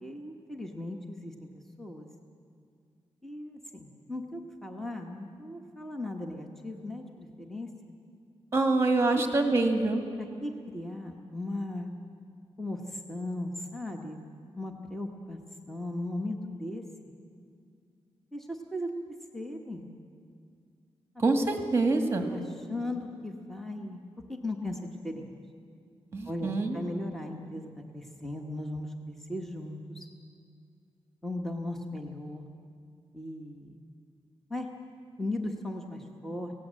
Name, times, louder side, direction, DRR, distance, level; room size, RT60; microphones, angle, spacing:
voice 1, 0.0-1.5 1.8-2.1 3.2-7.7 9.1-9.2 9.6-9.7 10.1-11.9 12.6-14.2 14.5-15.4 15.7-16.8 18.3-18.9 19.3-19.9 22.3-24.0 24.3-25.3 26.3-30.1 31.2-32.4 33.1-33.8 34.5-34.7 35.2-36.5, left 1 dB, 5° left, 3 dB, 1.2 m, -37 dB
voice 2, 8.5-10.0 21.2-22.3 26.1-26.8, right 3 dB, 25° right, 5 dB, 1.8 m, -25 dB
26.0 x 17.5 x 7.5 m, 2.3 s
wide cardioid pair, 170°, 11 cm